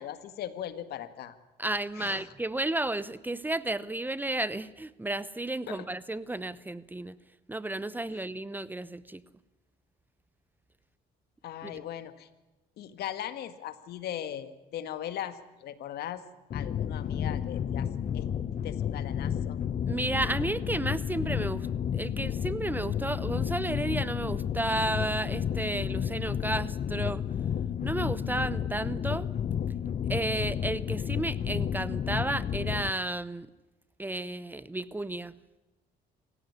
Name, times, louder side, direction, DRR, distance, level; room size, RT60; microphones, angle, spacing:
voice 1, 0.0-1.4 2.0-2.2 5.7-5.8 8.1-8.2 11.4-12.3 12.8-16.2 16.5-18.3 18.6-19.6, left 11 dB, 70° left, 11 dB, 1.9 m, -39 dB
voice 2, 1.6-7.2 7.5-9.2 11.6-11.8 19.9-21.7 21.9-27.2 27.8-29.3 30.1-33.5 34.0-35.4, right 2 dB, 10° right, 17 dB, 0.8 m, -32 dB
sound 1, 16.5-32.9, left 8 dB, 40° left, 0.9 m, -31 dB
26.0 x 16.0 x 9.7 m, 1.1 s
cardioid pair, 110°, 17 cm